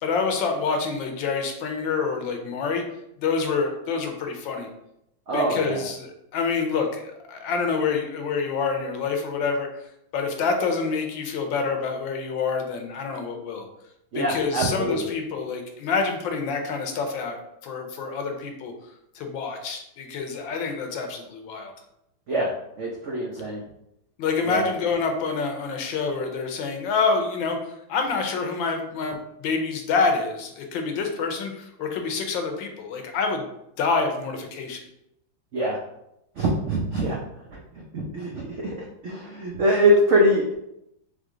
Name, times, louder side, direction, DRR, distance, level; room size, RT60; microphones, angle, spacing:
voice 1, 0.0-2.8 3.2-4.7 5.3-9.7 10.1-13.7 14.1-17.4 17.6-18.7 19.1-21.7 24.2-33.5 33.8-34.8, left 4 dB, 75° left, 4 dB, 1.4 m, -27 dB
voice 2, 5.3-5.8 14.1-15.1 22.3-22.5 22.8-23.6 24.5-24.6 35.5-35.8 36.4-37.2 37.5-37.6 37.9-40.6, right 1 dB, 80° right, -2 dB, 0.6 m, -23 dB
3.8 x 3.5 x 3.7 m, 0.81 s
omnidirectional pair, 2.1 m